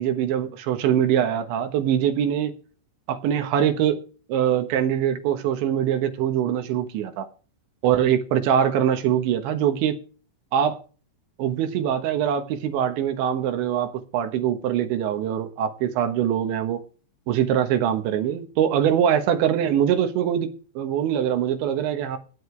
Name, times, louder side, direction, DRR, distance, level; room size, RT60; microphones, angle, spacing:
voice 1, 0.0-2.5 3.1-4.0 4.3-7.3 7.8-10.0 10.5-10.8 11.4-16.8 17.3-22.2, right 9 dB, 75° right, 8 dB, 3.5 m, -23 dB
17.5 x 10.5 x 3.3 m, 0.38 s
omnidirectional pair, 5.4 m